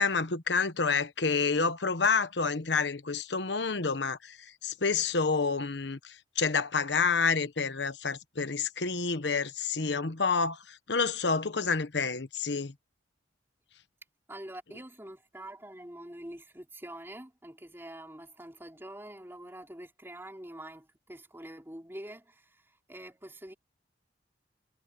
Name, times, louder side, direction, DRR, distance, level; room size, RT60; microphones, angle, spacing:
voice 1, 0.0-12.7, left 4 dB, 70° left, 1.2 m, -29 dB
voice 2, 14.3-23.5, right 1 dB, 15° right, 3.6 m, -45 dB
head